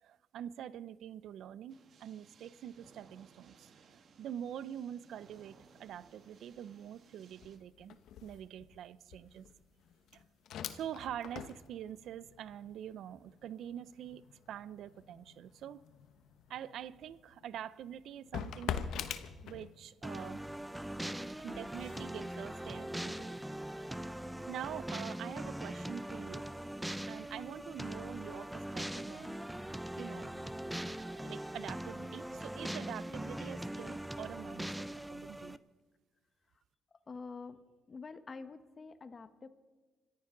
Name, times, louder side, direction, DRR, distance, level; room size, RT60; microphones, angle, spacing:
voice 1, 0.0-9.5 10.1-10.2 10.7-15.8 16.5-18.9 19.4-20.4 21.4-23.4 24.5-26.5 27.1-29.4 30.0-30.4 30.7-35.6, right 10 dB, 75° right, 0.6 m, -45 dB
sound 1, 1.7-7.6, right 5 dB, 60° right, 1.5 m, -62 dB
sound 2, 5.1-5.4 5.7-20.1 20.5-23.6, left 8 dB, 80° left, 1.0 m, -46 dB
sound 3, 20.0-35.6, right 1 dB, 5° right, 0.6 m, -41 dB
voice 2, 37.1-37.6 37.9-39.5, left 4 dB, 35° left, 1.3 m, -47 dB
25.5 x 14.5 x 3.9 m
cardioid pair, 90°, 0 cm